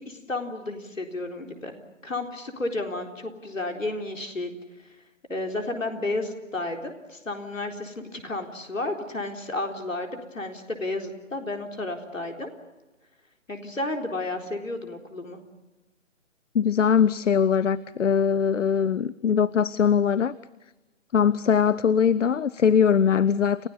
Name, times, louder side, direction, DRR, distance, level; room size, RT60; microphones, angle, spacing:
voice 1, 0.0-1.8 2.0-4.5 5.3-12.5 13.5-15.4, left 2 dB, 85° left, 4 dB, 4.1 m, -32 dB
voice 2, 16.5-20.4 21.1-23.7, left 7 dB, 70° left, 20 dB, 0.8 m, -21 dB
29.5 x 16.5 x 9.6 m, 1.1 s
figure-of-eight pair, 145°, 38 cm